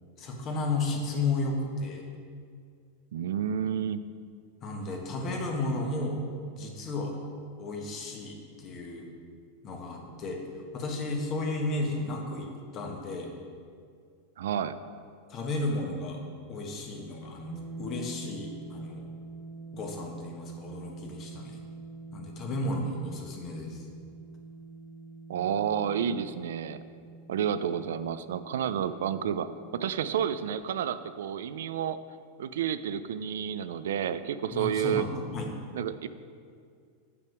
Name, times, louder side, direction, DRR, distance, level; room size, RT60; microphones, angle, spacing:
voice 1, 0.2-2.1 4.6-6.2 6.5-7.2 7.6-9.1 9.6-10.4 10.7-13.3 15.3-16.2 16.5-19.0 19.7-21.6 22.1-23.8 34.5-35.6, left 2 dB, 35° left, 1 dB, 1.2 m, -33 dB
voice 2, 3.1-4.1 14.4-14.8 25.3-26.8 27.3-32.0 32.4-35.0 35.7-36.1, right 9 dB, 85° right, 13 dB, 0.3 m, -30 dB
sound 1, 17.5-30.6, right 3 dB, 15° left, 1.1 m, -45 dB
7.8 x 5.9 x 4.5 m, 2.2 s
supercardioid pair, 140°, 0 cm